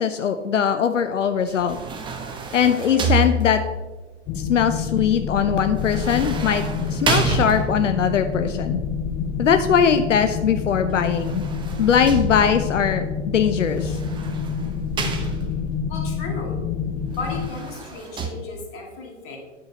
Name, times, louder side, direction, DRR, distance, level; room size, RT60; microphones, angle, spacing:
voice 1, 0.0-1.8 2.5-3.6 4.4-8.8 9.4-11.4 11.8-14.0, left 7 dB, 90° left, 9 dB, 0.5 m, -21 dB
sound 1, 1.5-3.9 5.8-8.0 10.9-12.8 13.8-15.7 17.1-18.3, right 3 dB, 15° right, 0.7 m, -28 dB
sound 2, 4.3-17.5, left 6 dB, 20° left, 0.4 m, -28 dB
voice 2, 15.9-16.6 17.1-19.4, left 3 dB, 35° left, 0 dB, 2.0 m, -34 dB
9.4 x 6.3 x 2.8 m, 1.2 s
hypercardioid pair, 110°, 36 cm